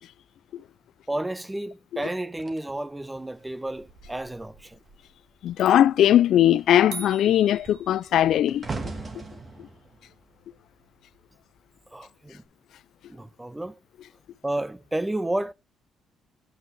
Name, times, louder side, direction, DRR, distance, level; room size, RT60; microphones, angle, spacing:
voice 1, 1.1-4.8 11.9-12.4 13.1-13.8 14.4-15.5, right 1 dB, 10° right, 0.5 m, -31 dB
sound 1, 2.4-5.1 5.4-5.8 6.1-11.4 12.2-12.4, right 3 dB, 35° right, 1.6 m, -41 dB
voice 2, 5.4-8.7, left 11 dB, 75° left, 0.3 m, -19 dB
sound 2, 6.9-8.5, right 5 dB, 80° right, 1.4 m, -41 dB
8.8 x 5.6 x 3.1 m
cardioid pair, 90°, 0 cm